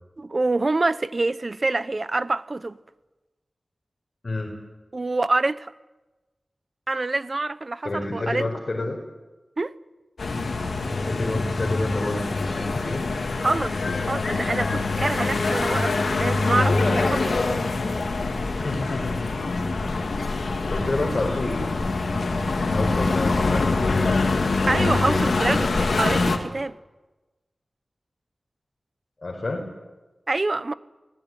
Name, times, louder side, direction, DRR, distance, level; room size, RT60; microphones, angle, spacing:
voice 1, 0.2-2.8 4.9-5.7 6.9-8.5 9.6-9.7 13.4-17.4 24.7-26.8 30.3-30.7, right 2 dB, 45° right, 1.0 m, -26 dB
voice 2, 7.8-9.0 10.9-13.0 18.6-19.3 20.2-21.9 22.7-25.9 29.2-29.7, left 2 dB, 50° left, 5.0 m, -29 dB
sound 1, 10.2-26.4, left 3 dB, 85° left, 2.7 m, -24 dB
24.5 x 19.5 x 9.7 m
wide cardioid pair, 70°, 0 cm